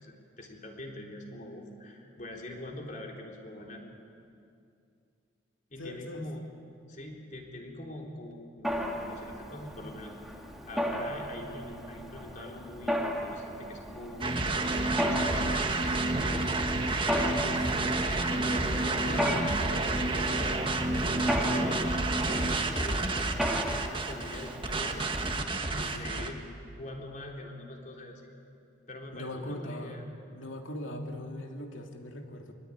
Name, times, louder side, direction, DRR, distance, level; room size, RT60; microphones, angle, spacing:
voice 1, 0.0-3.8 5.7-6.4 6.9-10.4 10.7-15.8 16.2-17.3 18.1-22.0 22.3-25.1 25.7-26.4 26.8-28.3 28.9-30.0, left 1 dB, 40° left, 1 dB, 3.7 m, -43 dB
voice 2, 5.8-6.3 17.2-18.1 20.8-21.9 25.7-26.0 29.1-30.1 30.3-32.5, left 1 dB, 85° left, 3 dB, 3.0 m, -41 dB
Mechanisms, 8.6-25.4, equal, ahead, 2.2 m, -36 dB
sound 1, 14.2-26.3, right 2 dB, 25° right, 1.6 m, -29 dB
24.5 x 22.5 x 9.8 m, 2.4 s
head